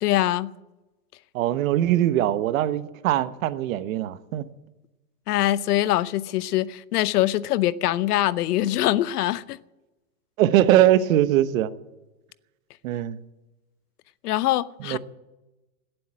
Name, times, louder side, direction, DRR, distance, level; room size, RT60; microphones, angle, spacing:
voice 1, 0.0-0.5 5.3-9.6 14.2-15.0, left 14 dB, 80° left, 0.8 m, -23 dB
voice 2, 1.3-4.4 10.4-11.7 12.8-13.2 14.8-15.0, right 12 dB, 60° right, 1.1 m, -21 dB
17.5 x 8.0 x 8.9 m
supercardioid pair, 165°, 46 cm